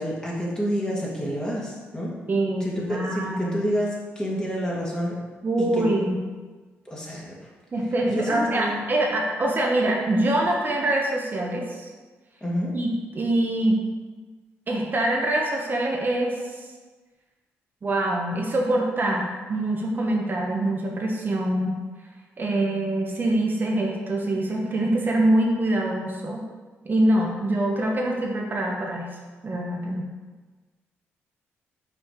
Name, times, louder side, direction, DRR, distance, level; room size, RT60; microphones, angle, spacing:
voice 1, 0.0-2.1 2.6-5.2 5.6-5.8 6.9-7.3 8.0-8.8 12.4-12.7, equal, 15° left, -4 dB, 1.8 m, -28 dB
voice 2, 2.3-3.6 5.4-6.2 7.7-11.9 12.7-12.9 13.1-13.8 14.7-16.4 17.8-21.8 22.4-26.4 26.8-29.1 29.4-30.1, right 1 dB, 40° right, -1 dB, 1.0 m, -24 dB
5.5 x 4.3 x 4.6 m, 1.3 s
cardioid pair, 85°, 5 cm